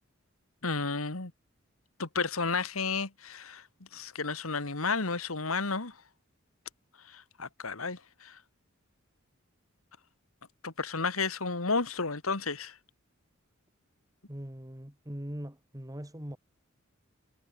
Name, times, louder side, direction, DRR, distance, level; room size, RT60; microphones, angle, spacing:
voice 1, 0.6-1.3 2.0-3.6 3.9-5.9 7.1-8.4 10.6-12.8, left 4 dB, 85° left, 2.3 m, -32 dB
voice 2, 14.3-16.4, equal, 15° right, 2.5 m, -41 dB
head